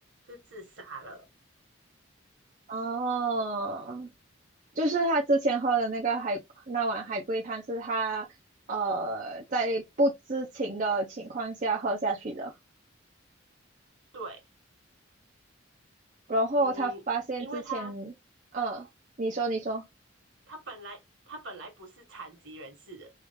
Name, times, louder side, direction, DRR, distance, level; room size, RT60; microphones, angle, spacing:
voice 1, 0.2-1.3 14.1-14.4 16.5-17.0 17.4-17.9 20.5-21.0 21.3-23.1, right 2 dB, 65° right, 1.4 m, -42 dB
voice 2, 2.7-4.1 4.8-6.4 6.7-8.3 8.7-12.5 16.3-18.1 18.5-18.9 19.2-19.8, right 2 dB, 40° right, 0.6 m, -29 dB
3.1 x 2.4 x 3.5 m
head